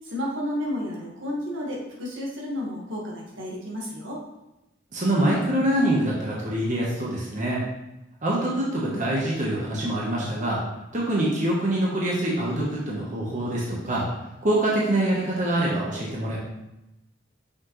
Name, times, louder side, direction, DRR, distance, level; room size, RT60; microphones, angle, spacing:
voice 1, 0.0-4.2, left 1 dB, 75° right, -3 dB, 1.6 m, -31 dB
voice 2, 4.9-7.6 8.2-10.6 10.9-14.1 14.4-16.4, right 1 dB, 40° right, -5 dB, 1.1 m, -25 dB
6.1 x 5.3 x 3.1 m, 0.94 s
head